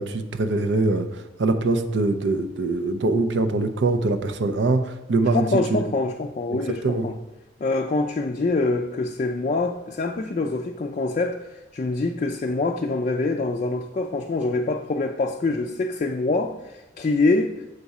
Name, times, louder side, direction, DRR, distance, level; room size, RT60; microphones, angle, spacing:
voice 1, 0.0-5.4 5.7-5.8 6.8-7.1, right 2 dB, 85° right, 9 dB, 0.6 m, -23 dB
voice 2, 5.3-7.2 7.6-17.7, left 3 dB, 40° left, 3 dB, 0.3 m, -25 dB
6.7 x 4.8 x 4.1 m, 1.0 s
head